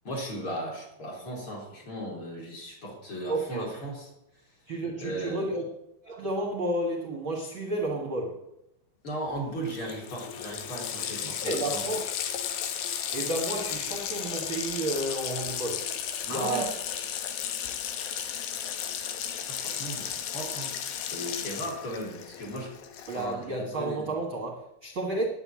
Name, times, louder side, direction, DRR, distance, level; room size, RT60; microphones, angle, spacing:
voice 1, 0.0-4.1 5.0-5.6 9.0-11.9 16.3-16.7 19.5-20.7 21.1-22.7 23.1-24.1, right 1 dB, 35° left, -2 dB, 4.4 m, -36 dB
voice 2, 3.3-3.7 4.7-5.6 6.0-8.4 11.2-12.1 13.1-15.9 16.3-16.7 23.1-25.3, right 2 dB, 50° right, 1 dB, 1.7 m, -31 dB
Water tap faucet, 9.4-9.5 9.7-23.4, left 9 dB, 75° left, 2.9 m, -34 dB
10.5 x 9.6 x 8.6 m, 0.85 s
omnidirectional pair, 4.4 m